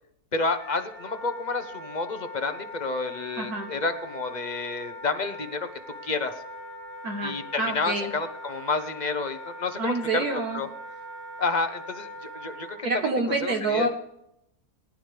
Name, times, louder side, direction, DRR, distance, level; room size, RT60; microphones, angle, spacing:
voice 1, 0.3-5.7 6.0-6.3 7.2-10.7 11.4-13.1 13.4-13.9, left 3 dB, 35° left, 9 dB, 0.9 m, -30 dB
Wind instrument woodwind instrument, 0.6-12.8, equal, 55° right, 4.0 m, -41 dB
voice 2, 3.4-3.7 7.0-8.1 9.8-10.6 12.8-13.9, right 2 dB, 70° right, 3 dB, 1.8 m, -27 dB
19.0 x 11.0 x 3.4 m, 0.77 s
omnidirectional pair, 1.7 m